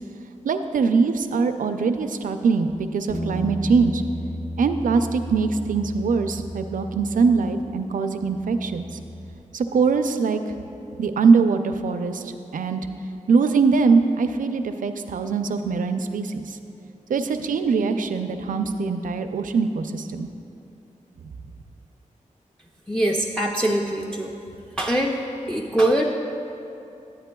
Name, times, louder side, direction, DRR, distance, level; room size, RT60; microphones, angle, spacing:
voice 1, 0.4-4.0 4.6-9.0 9.5-10.6 11.0-12.9 13.3-16.6 17.1-20.3 21.2-21.3, right 4 dB, 85° right, 8 dB, 0.4 m, -22 dB
sound 1, 3.1-9.3, equal, 45° left, 0.9 m, -34 dB
voice 2, 22.9-24.4 24.8-25.2 25.5-26.0, right 1 dB, 5° left, 0 dB, 0.4 m, -22 dB
11.0 x 8.7 x 2.2 m, 2.7 s
wide cardioid pair, 90°, 13 cm